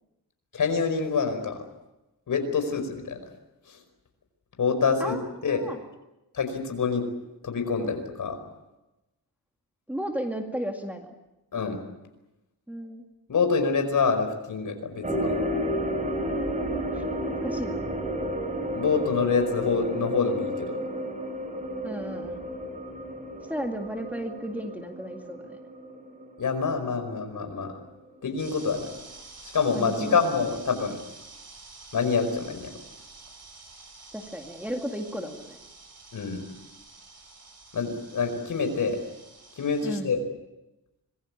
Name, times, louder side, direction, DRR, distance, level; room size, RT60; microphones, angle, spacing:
voice 1, 0.5-1.6 2.3-3.2 3.7-3.8 4.6-5.2 5.4-5.6 6.3-7.1 7.4-8.4 11.5-11.8 13.3-15.3 18.7-20.8 26.4-27.8 28.2-28.9 29.5-31.0 31.9-32.7 36.1-36.4 37.7-39.0 39.6-40.2, left 5 dB, 55° left, 7 dB, 5.2 m, -26 dB
voice 2, 5.0-5.8 9.9-11.1 12.7-13.0 16.9-17.0 17.4-17.8 21.8-22.4 23.5-25.6 29.7-30.2 34.1-35.6 39.8-40.1, equal, 5° right, 2 dB, 2.1 m, -34 dB
sound 1, 15.0-27.6 27.8-27.9 28.5-28.6, equal, 20° right, 3.8 m, -32 dB
sound 2, 28.4-39.9, right 3 dB, 40° right, 6.9 m, -49 dB
26.5 x 21.5 x 8.6 m, 0.96 s
wide cardioid pair, 170°, 38 cm